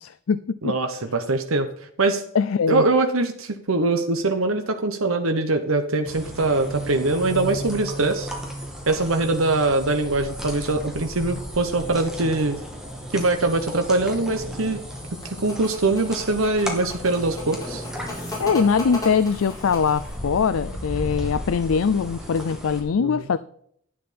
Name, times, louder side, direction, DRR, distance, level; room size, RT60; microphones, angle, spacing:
voice 1, 0.0-0.7 2.3-2.8 18.4-23.4, left 6 dB, 75° left, 12 dB, 0.4 m, -22 dB
voice 2, 0.6-1.7 2.0-2.2 2.7-8.3 8.9-12.6 13.1-14.8 15.2-17.8 23.0-23.3, right 2 dB, 80° right, 6 dB, 1.1 m, -23 dB
sound 1, 6.1-22.8, equal, 5° right, 2.7 m, -35 dB
sound 2, 15.0-20.2, left 2 dB, 20° left, 4.9 m, -36 dB
11.5 x 9.5 x 4.3 m, 0.66 s
head